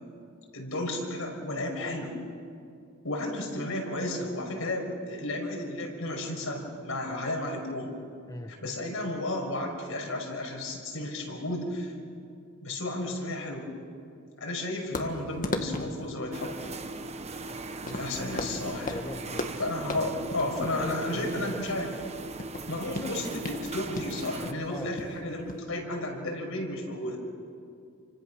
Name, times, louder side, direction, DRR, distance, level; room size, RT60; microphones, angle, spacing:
voice 1, 0.5-2.2 3.0-7.9 8.6-11.9 12.6-13.7 14.4-16.8 17.8-19.0 19.6-21.9 22.7-27.2, left 1 dB, 75° left, 1 dB, 5.6 m, -33 dB
sound 1, 14.9-25.6, left 2 dB, 40° left, 1.8 m, -38 dB
sound 2, 16.3-24.6, right 3 dB, 30° right, 1.1 m, -39 dB
voice 2, 18.9-19.7 19.9-20.1 20.8-21.7 24.7-25.0, left 1 dB, 15° left, 3 dB, 1.4 m, -40 dB
29.5 x 25.5 x 6.4 m, 2.4 s
head